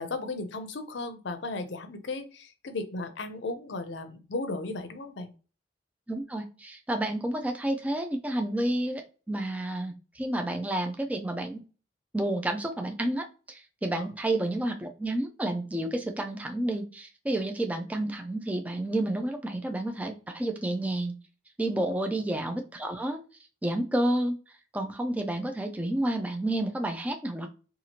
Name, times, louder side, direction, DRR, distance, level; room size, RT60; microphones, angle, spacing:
voice 1, 0.0-5.3 13.9-14.1, left 3 dB, 65° left, 8 dB, 0.5 m, -35 dB
voice 2, 6.1-11.6 12.1-21.2 21.6-23.2 23.6-24.3 24.7-27.5, right 1 dB, 10° right, 5 dB, 0.3 m, -30 dB
2.8 x 2.4 x 2.8 m, 0.34 s
head